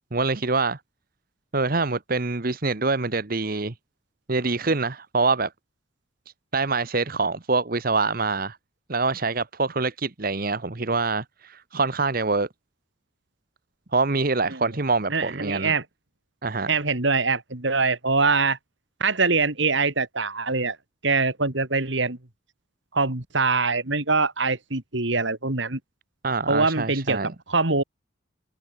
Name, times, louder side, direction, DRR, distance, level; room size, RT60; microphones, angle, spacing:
voice 1, 0.1-0.8 1.5-3.7 4.3-5.5 6.5-8.6 8.9-12.5 13.9-15.7 16.4-16.7 26.2-27.3, right 3 dB, 45° right, 1.1 m, -25 dB
voice 2, 15.1-15.8 16.7-18.6 19.0-20.8 21.0-22.2 22.9-25.8 26.5-27.2 27.5-27.8, right 4 dB, 65° right, 2.4 m, -23 dB
head